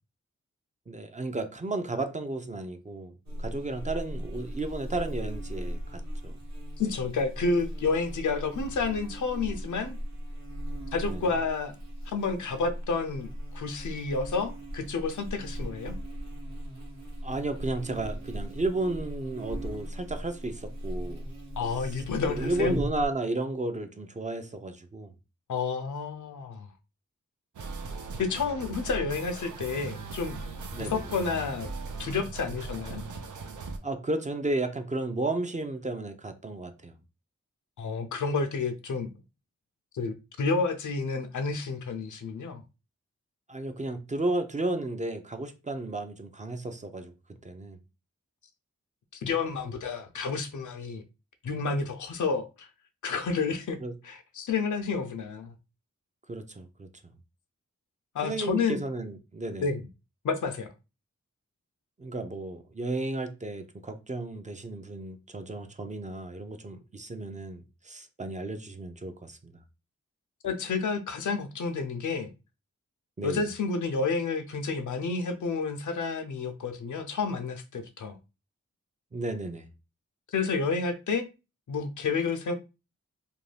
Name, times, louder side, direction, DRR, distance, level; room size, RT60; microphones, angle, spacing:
voice 1, 0.9-3.1 3.4-6.4 11.1-11.2 17.2-21.2 22.3-25.1 30.7-31.0 33.8-36.9 43.5-47.1 47.4-47.8 53.8-53.9 56.3-56.9 58.2-59.7 62.0-69.5 73.2-73.4 79.1-79.6, right 2 dB, 25° right, 0.4 m, -33 dB
Buzz, 3.2-23.1, equal, 65° right, 1.0 m, -38 dB
voice 2, 6.8-10.0 10.9-11.8 12.1-13.3 13.5-16.0 21.6-22.7 25.5-26.7 28.2-30.4 30.8-31.7 32.0-33.0 37.8-39.1 39.9-42.6 49.2-51.0 51.4-52.7 53.0-55.5 58.1-58.8 59.6-59.8 60.2-60.7 70.4-72.3 73.2-78.2 80.3-81.3 81.7-82.5, left 4 dB, 80° left, 0.5 m, -30 dB
sound 1, 27.5-33.8, right 3 dB, 90° right, 0.5 m, -39 dB
2.5 x 2.2 x 3.2 m
wide cardioid pair, 100°, 30 cm